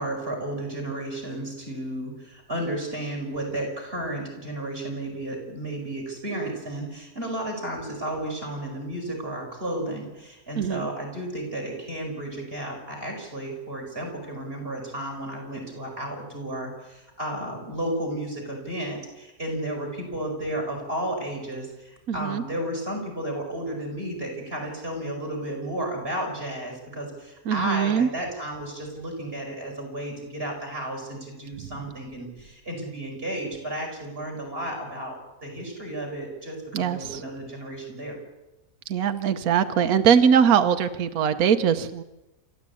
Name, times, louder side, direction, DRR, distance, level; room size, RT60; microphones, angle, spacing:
voice 1, 0.0-38.2, right 1 dB, 35° right, 1 dB, 5.6 m, -33 dB
voice 2, 10.6-10.9 22.1-22.4 27.5-28.1 36.7-37.2 38.9-42.0, right 7 dB, 70° right, 8 dB, 1.3 m, -21 dB
28.0 x 13.5 x 8.4 m, 1.0 s
omnidirectional pair, 1.6 m